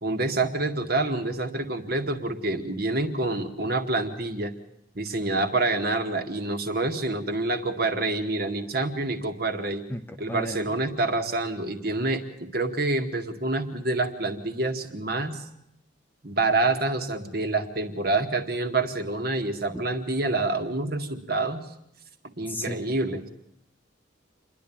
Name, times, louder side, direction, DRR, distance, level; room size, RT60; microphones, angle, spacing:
voice 1, 0.0-4.5 4.9-9.8 10.2-12.2 12.5-15.4 16.2-21.6 22.4-23.3, right 2 dB, 50° right, 6 dB, 2.0 m, -27 dB
voice 2, 9.9-10.8 19.7-19.8 22.5-22.8, left 1 dB, 10° left, 7 dB, 0.9 m, -35 dB
28.0 x 11.0 x 8.7 m, 0.80 s
head